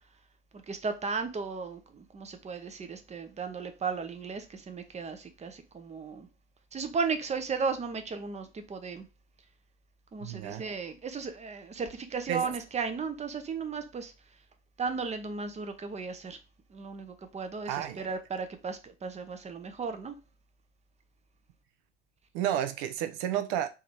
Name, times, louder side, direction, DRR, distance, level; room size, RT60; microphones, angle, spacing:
voice 1, 0.7-6.3 6.7-9.1 10.1-14.1 14.8-16.4 16.7-20.2, right 5 dB, 20° right, 0.8 m, -35 dB
voice 2, 10.2-10.6 12.3-12.4 17.6-18.0 22.3-23.7, right 11 dB, 55° right, 0.7 m, -31 dB
3.6 x 3.0 x 4.4 m
figure-of-eight pair, 65°, 32 cm